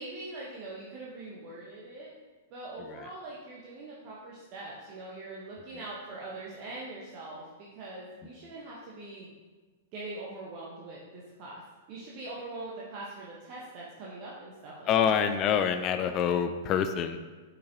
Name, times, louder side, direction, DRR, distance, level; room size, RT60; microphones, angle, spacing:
voice 1, 0.0-2.1 2.5-9.3 9.9-11.6 11.9-15.2, right 2 dB, 40° right, -5 dB, 1.1 m, -42 dB
voice 2, 14.9-17.2, left 8 dB, 30° left, 9 dB, 0.4 m, -26 dB
7.5 x 5.1 x 2.8 m, 1.3 s
figure-of-eight pair, 100°, 0 cm